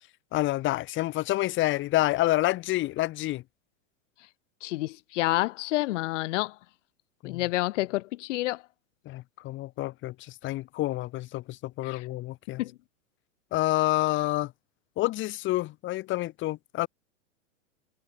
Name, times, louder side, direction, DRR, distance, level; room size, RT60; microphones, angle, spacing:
voice 1, 0.3-3.4 7.2-7.4 9.0-12.6 13.5-14.5 15.0-16.9, left 17 dB, 30° left, 1.1 m, -28 dB
voice 2, 4.6-6.6 7.2-8.6 11.8-12.1 12.6-12.7, left 18 dB, 60° left, 1.4 m, -29 dB
hypercardioid pair, 130°, 42 cm